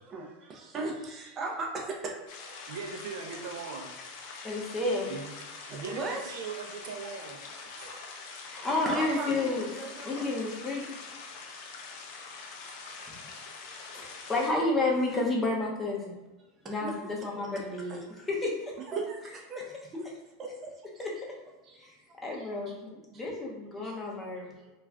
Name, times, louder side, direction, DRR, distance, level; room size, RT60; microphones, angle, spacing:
voice 1, 0.1-2.2 2.5-2.6 3.2-3.3 4.3-4.5 5.7-6.3 7.8-8.0 8.7-10.3 13.6-14.0 16.6-16.9 17.9-18.0 18.9-20.1 20.4-20.7 21.0-21.1 21.6-21.8 22.1-22.5 23.8-24.1 24.6-24.7, right 3 dB, 30° right, 0 dB, 0.5 m, -38 dB
sound 1, 2.3-14.5, left 4 dB, 60° left, 0.4 m, -44 dB
voice 2, 2.7-4.0 5.1-8.0, right 5 dB, 80° right, 4 dB, 0.5 m, -41 dB
voice 3, 4.4-5.1 8.4-10.8 12.9-13.2 14.3-16.1 16.6-18.0 18.3-18.7 21.0-21.1 21.8-21.9 22.2-24.5, left 2 dB, 15° left, -2 dB, 0.7 m, -31 dB
2.4 x 2.3 x 3.2 m, 1.1 s
supercardioid pair, 135°, 0 cm